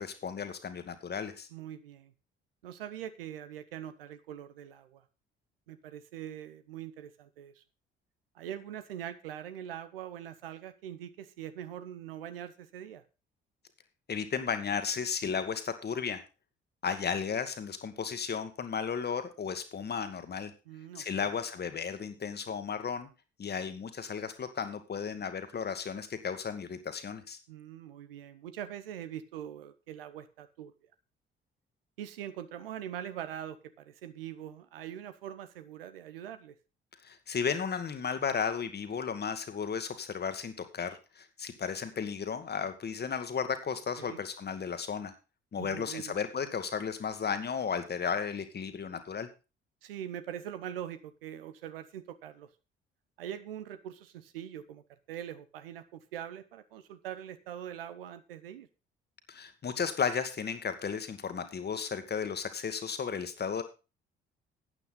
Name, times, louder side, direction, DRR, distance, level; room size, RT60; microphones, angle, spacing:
voice 1, 0.0-1.5 14.1-16.2 16.8-20.5 20.9-23.1 23.4-27.4 37.0-45.1 45.5-49.3 59.3-63.6, left 6 dB, 35° left, 9 dB, 1.7 m, -34 dB
voice 2, 1.5-2.1 2.6-5.0 5.7-7.6 8.3-13.0 20.7-21.3 27.5-30.7 32.0-36.5 44.0-44.2 45.6-46.2 49.8-52.5 53.2-58.7, right 10 dB, 75° right, 12 dB, 0.9 m, -43 dB
12.5 x 9.0 x 3.8 m, 0.31 s
figure-of-eight pair, 45°, 29 cm